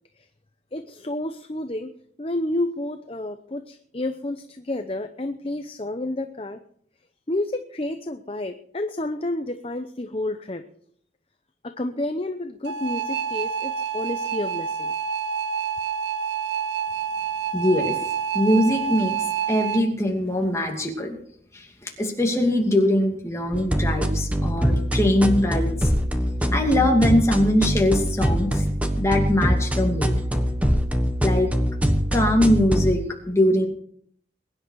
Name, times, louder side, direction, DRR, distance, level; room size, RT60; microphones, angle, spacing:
voice 1, 0.7-1.9 2.2-6.6 7.3-10.6 11.6-14.9, left 1 dB, 30° left, 7 dB, 0.8 m, -30 dB
sound 1, 12.6-19.8, right 7 dB, 80° right, 1.1 m, -28 dB
voice 2, 17.5-18.0 18.3-19.2 19.5-21.2 21.5-25.9 26.5-28.6 29.0-30.2 31.2-31.5 32.1-33.7, left 1 dB, 15° left, 1 dB, 2.5 m, -22 dB
sound 2, 23.5-32.9, equal, 10° right, 1.3 m, -23 dB
22.0 x 10.5 x 4.7 m, 0.63 s
head